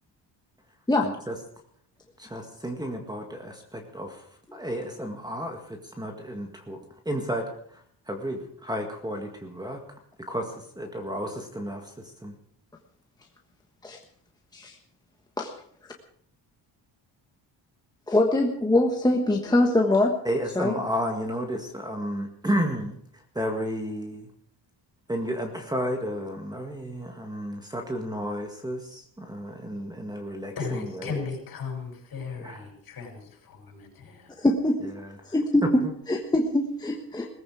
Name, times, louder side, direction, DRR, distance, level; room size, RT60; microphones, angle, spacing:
voice 1, 1.0-1.4 2.2-4.2 4.5-6.8 7.1-9.8 10.3-12.3 20.3-23.0 23.4-24.3 25.1-31.3 32.4-32.6 34.8-35.1 35.6-35.9, equal, 10° right, 4 dB, 1.9 m, -32 dB
voice 2, 18.1-20.1 20.5-20.7 34.4-34.8 35.2-35.8 36.1-37.3, left 1 dB, 10° left, 1 dB, 1.3 m, -23 dB
voice 3, 30.6-34.3, left 5 dB, 55° left, 2 dB, 6.9 m, -36 dB
18.5 x 15.5 x 4.9 m, 0.64 s
cardioid pair, 145°, 43 cm